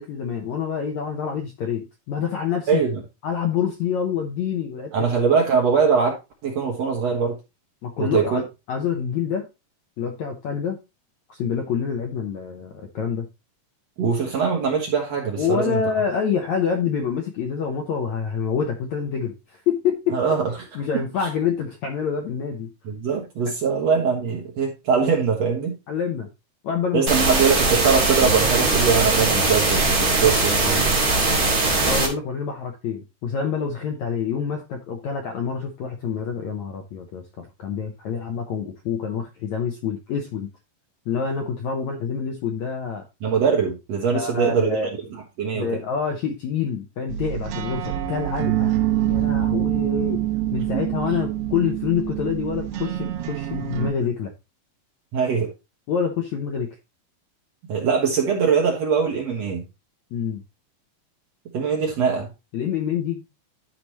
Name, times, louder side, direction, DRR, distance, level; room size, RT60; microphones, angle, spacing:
voice 1, 0.0-2.8 3.2-5.1 7.8-9.5 10.0-10.8 11.3-13.3 15.4-20.2 20.7-22.7 25.9-26.3 26.6-27.1 31.8-40.5 41.1-43.0 44.1-45.0 45.5-48.7 49.1-50.2 50.5-54.3 55.9-56.7 60.1-60.4 62.5-63.2, left 7 dB, 70° left, 3 dB, 1.7 m, -27 dB
voice 2, 2.7-3.0 4.9-6.2 6.4-7.4 8.0-8.4 14.0-15.8 20.1-20.5 22.9-25.8 26.9-31.0 43.2-44.8 45.1-45.7 50.7-50.8 55.1-55.5 57.7-59.6 61.5-62.3, right 6 dB, 55° right, 1 dB, 2.0 m, -22 dB
sound 1, 27.1-32.1, right 3 dB, 30° right, 2.1 m, -20 dB
sound 2, 47.1-53.9, right 13 dB, 80° right, 2.8 m, -25 dB
12.0 x 4.9 x 3.0 m, 0.25 s
omnidirectional pair, 4.5 m